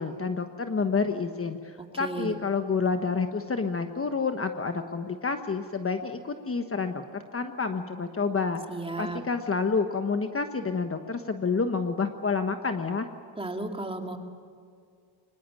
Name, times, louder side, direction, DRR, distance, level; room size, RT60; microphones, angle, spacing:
voice 1, 0.0-8.6 9.0-13.1, left 4 dB, 30° left, 7 dB, 1.3 m, -29 dB
voice 2, 1.9-2.3 8.7-9.2 13.4-14.2, right 2 dB, 15° right, 3 dB, 2.8 m, -34 dB
24.0 x 21.0 x 9.1 m, 2.2 s
cardioid pair, 95°, 43 cm